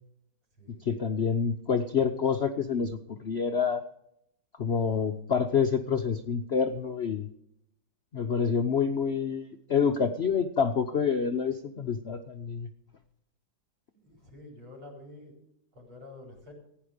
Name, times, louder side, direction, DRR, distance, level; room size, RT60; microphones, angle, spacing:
voice 1, 0.8-3.9 4.6-7.3 8.1-12.7, left 6 dB, 60° left, 7 dB, 0.6 m, -27 dB
voice 2, 13.9-15.4 15.7-16.5, left 2 dB, 80° right, -1 dB, 5.3 m, -48 dB
15.0 x 9.9 x 5.1 m, 0.75 s
omnidirectional pair, 2.1 m